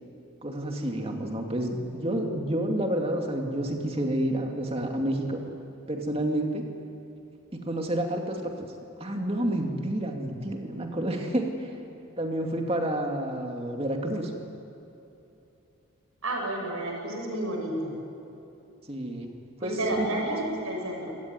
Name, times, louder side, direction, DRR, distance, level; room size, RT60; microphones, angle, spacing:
voice 1, 0.4-5.4 5.9-6.6 7.5-8.7 9.0-11.7 12.2-14.3 18.9-19.3 19.6-20.2, right 1 dB, 25° right, 2 dB, 2.5 m, -29 dB
voice 2, 16.2-18.0 19.6-21.1, right 1 dB, 75° right, 1 dB, 6.5 m, -31 dB
25.0 x 18.5 x 9.8 m, 2.9 s
head